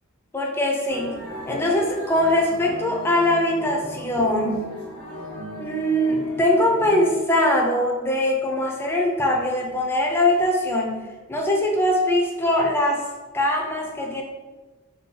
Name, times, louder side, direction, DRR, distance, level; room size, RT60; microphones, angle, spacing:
voice 1, 0.3-1.1 1.4-4.6 5.6-11.0 11.3-13.0 13.3-14.2, left 1 dB, 10° left, 0 dB, 0.4 m, -22 dB
sound 1, 0.9-7.2, equal, 80° left, 0.9 m, -36 dB
2.7 x 2.3 x 3.7 m, 1.2 s
head